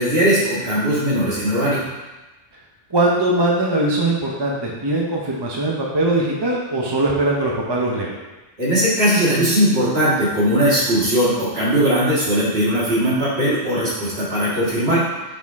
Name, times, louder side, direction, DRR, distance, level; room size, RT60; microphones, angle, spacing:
voice 1, 0.0-1.9 8.6-15.0, equal, 55° right, -8 dB, 2.2 m, -19 dB
voice 2, 2.9-8.1, right 2 dB, 25° right, -2 dB, 0.6 m, -21 dB
6.1 x 4.3 x 3.6 m, 1.1 s
omnidirectional pair, 1.3 m